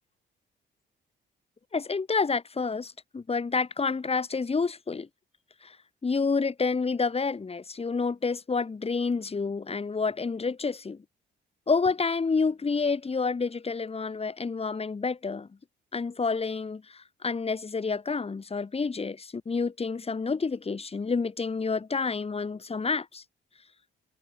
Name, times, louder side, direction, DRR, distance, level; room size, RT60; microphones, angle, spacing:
voice 1, 1.7-5.1 5.6-5.8 6.0-11.0 11.7-15.5 15.9-23.2, left 4 dB, 30° left, 3.9 m, -29 dB
cardioid pair, 90°, 20 cm